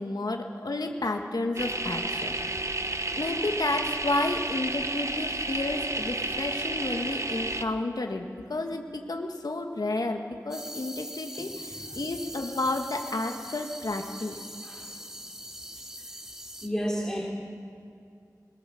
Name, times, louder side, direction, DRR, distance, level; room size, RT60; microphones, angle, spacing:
voice 1, 0.0-2.3 3.2-14.4, left 2 dB, 70° left, 3 dB, 1.6 m, -31 dB
sound 1, 1.6-7.6, right 2 dB, 45° right, 1.1 m, -31 dB
sound 2, 10.5-16.7, equal, 10° right, 1.4 m, -42 dB
voice 2, 16.6-17.2, equal, 10° left, -3 dB, 3.6 m, -31 dB
21.5 x 20.5 x 7.0 m, 2.4 s
wide cardioid pair, 55°, 7 cm